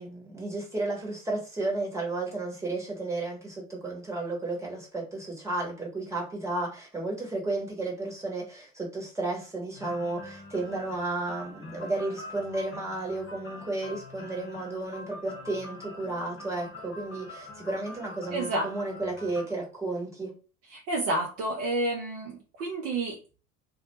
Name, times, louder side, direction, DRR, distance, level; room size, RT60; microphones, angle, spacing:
voice 1, 0.0-20.3, right 2 dB, 5° right, -2 dB, 1.0 m, -33 dB
sound 1, 9.7-19.5, left 2 dB, 30° left, 1.2 m, -45 dB
voice 2, 18.3-18.7 20.7-22.3 22.6-23.2, right 2 dB, 35° right, 0 dB, 0.6 m, -29 dB
2.3 x 2.1 x 3.0 m, 0.36 s
figure-of-eight pair, 65°, 41 cm